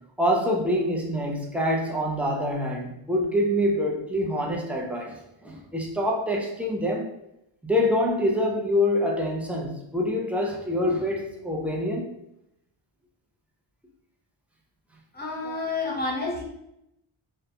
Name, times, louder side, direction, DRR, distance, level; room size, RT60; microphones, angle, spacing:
voice 1, 0.2-7.1 7.6-12.1, left 1 dB, 5° right, -1 dB, 0.4 m, -26 dB
voice 2, 15.1-16.4, left 3 dB, 20° left, -3 dB, 0.7 m, -29 dB
2.2 x 2.0 x 2.8 m, 0.82 s
wide cardioid pair, 75°, 49 cm